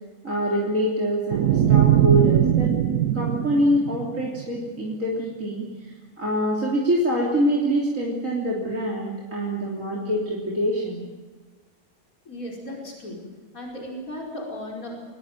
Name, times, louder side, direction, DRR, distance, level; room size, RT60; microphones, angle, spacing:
voice 1, 0.2-2.7 3.1-11.1, equal, 55° right, -4 dB, 3.8 m, -25 dB
sound 1, 1.3-4.6, right 11 dB, 75° right, 1.4 m, -20 dB
voice 2, 12.3-13.2 13.5-15.0, left 1 dB, 60° left, -2 dB, 5.7 m, -35 dB
24.5 x 18.5 x 9.2 m, 1.3 s
omnidirectional pair, 1.7 m